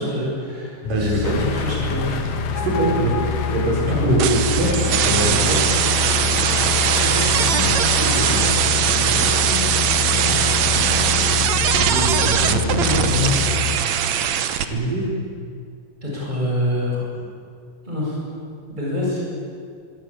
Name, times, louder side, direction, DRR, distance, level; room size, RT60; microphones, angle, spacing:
voice 1, 0.0-2.2 3.9-4.2 5.1-5.2 12.7-13.0 16.0-17.0 17.9-18.2 18.7-19.2, left 1 dB, 10° right, -4 dB, 7.9 m, -26 dB
sound 1, 0.8-13.8, left 7 dB, 55° left, 2.5 m, -25 dB
voice 2, 0.9-1.5 2.5-5.7 6.2-6.7 7.0-7.6 8.0-8.7 8.9-9.9 10.2-11.1 11.7-13.5 14.6-15.1, right 1 dB, 80° right, -2 dB, 7.9 m, -25 dB
sound 2, 1.2-8.5, left 6 dB, 80° left, 3.4 m, -32 dB
sound 3, 4.2-14.6, right 9 dB, 65° right, 2.3 m, -20 dB
25.0 x 24.5 x 8.9 m, 2.2 s
omnidirectional pair, 3.8 m